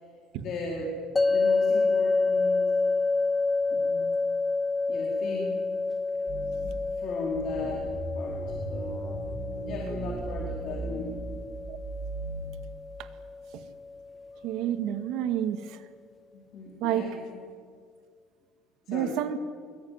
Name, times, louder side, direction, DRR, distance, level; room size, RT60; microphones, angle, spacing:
voice 1, 0.4-1.0 1.3-2.7 3.7-4.1 4.9-5.6 7.0-8.4 8.7-8.9 9.7-11.1 14.3-14.4 16.3-17.4 18.9-19.1, left 3 dB, 45° left, -2 dB, 4.6 m, -37 dB
sound 1, 1.2-14.3, left 3 dB, 15° left, 0.8 m, -29 dB
sound 2, 6.3-6.9 7.3-12.4, right 3 dB, 20° right, 5.5 m, -37 dB
voice 2, 14.4-15.6 16.8-17.2 18.9-19.4, right 10 dB, 65° right, 9 dB, 1.9 m, -29 dB
25.0 x 23.0 x 9.6 m, 2.1 s
cardioid pair, 155°, 0 cm